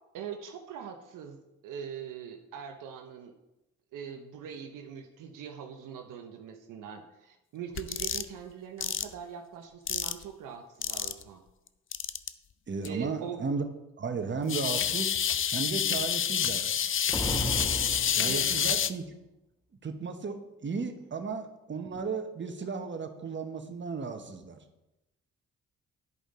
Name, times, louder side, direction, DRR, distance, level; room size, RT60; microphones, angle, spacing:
voice 1, 0.1-3.3 3.9-11.4 12.8-13.5 18.2-18.4, right 8 dB, 80° right, 4 dB, 0.8 m, -42 dB
sound 1, 7.8-8.3 8.8-9.0 9.9-10.2 10.8-11.2 11.9-12.3 12.8-12.9 14.5-18.9, left 9 dB, 40° left, 0.5 m, -28 dB
voice 2, 12.7-13.6 14.0-15.2 15.5-16.7 18.1-19.0 19.8-24.6, right 4 dB, 35° right, 6 dB, 1.2 m, -34 dB
sound 2, 17.1-18.7, equal, 10° left, 1.1 m, -34 dB
11.0 x 5.2 x 3.8 m, 0.94 s
supercardioid pair, 55°, 32 cm